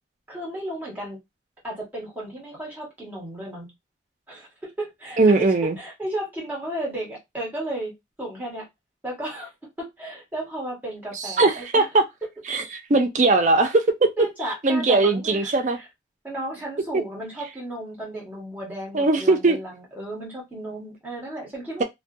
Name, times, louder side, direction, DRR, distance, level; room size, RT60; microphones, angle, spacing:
voice 1, 0.3-1.2 1.6-3.7 4.3-5.2 5.8-7.9 8.2-8.7 9.0-9.5 9.8-11.8 14.2-15.5 16.2-21.8, right 1 dB, 10° right, 1.2 m, -34 dB
voice 2, 5.2-5.8 11.1-12.0 12.5-14.1 14.4-15.8 18.9-19.6, right 3 dB, 40° right, 0.4 m, -20 dB
2.4 x 2.2 x 2.6 m
head